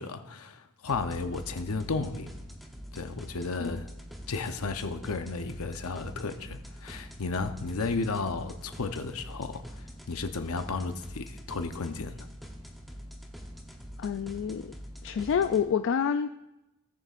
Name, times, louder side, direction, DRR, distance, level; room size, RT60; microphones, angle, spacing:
voice 1, 0.0-2.3 2.9-3.9 4.3-12.1, left 3 dB, 75° left, 8 dB, 0.7 m, -33 dB
sound 1, 0.9-15.6, equal, ahead, 0.8 m, -45 dB
voice 2, 14.0-14.7 15.0-16.3, left 7 dB, 60° left, 9 dB, 0.3 m, -28 dB
18.5 x 6.6 x 2.5 m, 0.95 s
head